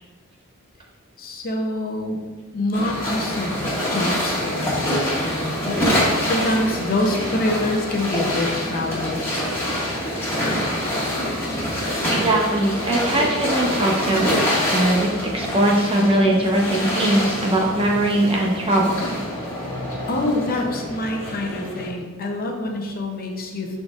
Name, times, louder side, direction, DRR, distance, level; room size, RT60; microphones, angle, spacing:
voice 1, 1.2-2.2 2.5-9.2 20.1-23.8, left 1 dB, 45° left, 2 dB, 0.8 m, -26 dB
sound 1, 2.7-21.9, equal, 10° left, 1.9 m, -25 dB
voice 2, 12.1-19.0, right 1 dB, 25° right, -1 dB, 1.0 m, -21 dB
11.5 x 3.9 x 2.5 m, 1.3 s
head